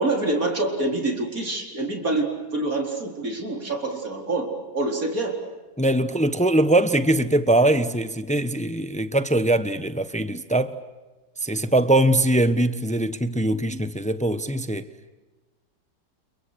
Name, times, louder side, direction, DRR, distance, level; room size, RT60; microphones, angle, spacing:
voice 1, 0.0-5.4, right 2 dB, 55° right, 4.8 m, -26 dB
voice 2, 5.8-10.8 11.4-14.9, right 1 dB, 5° left, 0.9 m, -22 dB
30.0 x 30.0 x 6.5 m
omnidirectional pair, 1.9 m